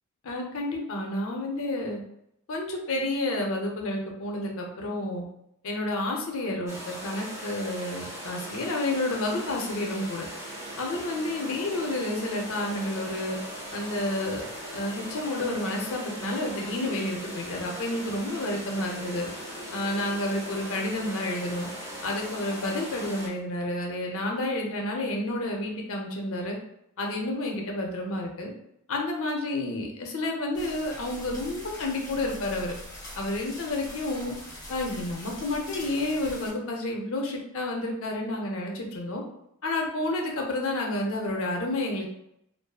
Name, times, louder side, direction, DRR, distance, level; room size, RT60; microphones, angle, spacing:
voice 1, 0.2-2.0 2.5-5.2 5.6-10.3 10.8-13.4 13.7-14.4 14.7-19.3 19.7-21.7 22.0-26.6 27.0-28.5 28.9-32.7 33.1-34.3 34.7-39.2 39.6-42.1, left 1 dB, 65° left, 1 dB, 0.5 m, -30 dB
sound 1, 6.7-23.3, right 1 dB, 15° right, 0.6 m, -39 dB
sound 2, 30.5-36.5, left 1 dB, 20° left, 0.9 m, -42 dB
2.5 x 2.3 x 2.3 m, 0.77 s
head